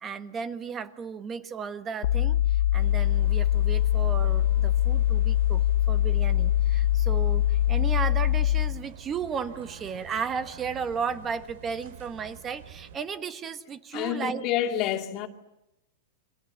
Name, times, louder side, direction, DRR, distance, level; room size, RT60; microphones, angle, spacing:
voice 1, 0.0-14.4, right 6 dB, 15° right, 1.3 m, -34 dB
sound 1, 2.0-8.8, left 13 dB, 55° left, 0.9 m, -23 dB
sound 2, 2.8-13.0, right 8 dB, 60° right, 3.5 m, -47 dB
voice 2, 13.9-15.3, left 11 dB, 30° left, 2.4 m, -28 dB
29.5 x 26.0 x 7.5 m
supercardioid pair, 170°, 0 cm